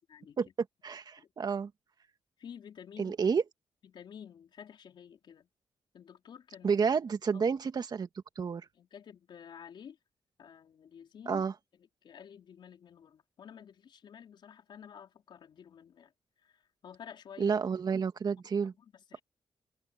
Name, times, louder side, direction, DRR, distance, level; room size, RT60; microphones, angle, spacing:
voice 1, 0.8-1.7 3.0-3.4 6.6-8.1 8.4-8.7 11.3-11.5 17.4-18.7, right 6 dB, 55° right, 2.3 m, -30 dB
voice 2, 2.4-3.2 3.8-5.5 5.9-6.8 7.3-7.5 8.8-10.0 10.4-11.4 12.0-16.1 16.4-17.6 18.8-19.2, left 8 dB, 70° left, 4.5 m, -51 dB
supercardioid pair, 55°, 8 cm